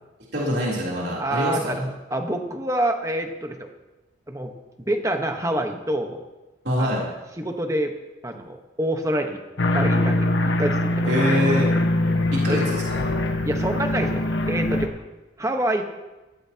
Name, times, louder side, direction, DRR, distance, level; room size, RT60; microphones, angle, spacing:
voice 1, 0.3-1.8 6.6-7.1 11.1-11.7 12.3-13.0, equal, 60° right, -5 dB, 3.4 m, -24 dB
voice 2, 1.1-3.7 4.3-4.5 4.8-6.2 6.8-7.0 7.4-7.9 8.2-9.4 9.7-10.3 10.6-11.0 12.0-12.6 13.4-14.9 15.4-15.8, right 1 dB, 15° right, 4 dB, 1.1 m, -27 dB
sound 1, 9.6-14.9, left 1 dB, 70° left, 1.3 m, -22 dB
17.0 x 14.0 x 2.9 m, 1.1 s
head